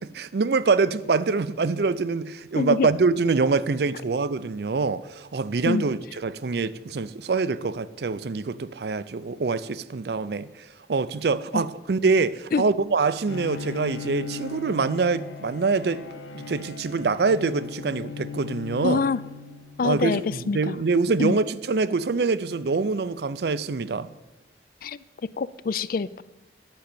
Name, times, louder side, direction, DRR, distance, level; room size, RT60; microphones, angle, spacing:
voice 1, 0.2-10.5 10.9-16.1 16.3-19.0 19.8-24.1, right 4 dB, 60° right, 0.5 m, -25 dB
voice 2, 2.6-2.9 5.7-5.9 11.5-11.6 12.5-12.7 18.8-19.2 19.8-20.8 21.2-21.4 24.8-25.0 25.4-26.2, left 4 dB, 50° left, 0.4 m, -25 dB
Bowed string instrument, 13.3-20.0, left 5 dB, 85° left, 1.0 m, -38 dB
10.5 x 6.3 x 8.4 m
head